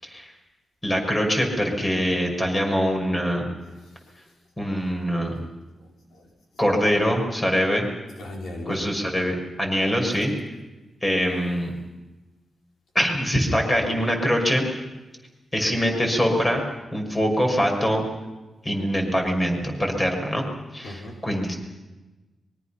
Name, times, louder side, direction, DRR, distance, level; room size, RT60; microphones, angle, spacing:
voice 1, 0.8-3.5 4.6-5.3 6.6-7.8 8.7-10.3 11.0-11.7 12.9-14.6 15.5-16.6 16.9-18.0 18.6-20.5 20.7-21.6, equal, 20° left, 6.2 m, -23 dB
voice 2, 3.7-4.2 5.8-6.3 8.2-9.0 20.8-21.3, left 1 dB, 85° left, 4.8 m, -39 dB
24.0 x 23.5 x 6.0 m
cardioid pair, 95°, 0 cm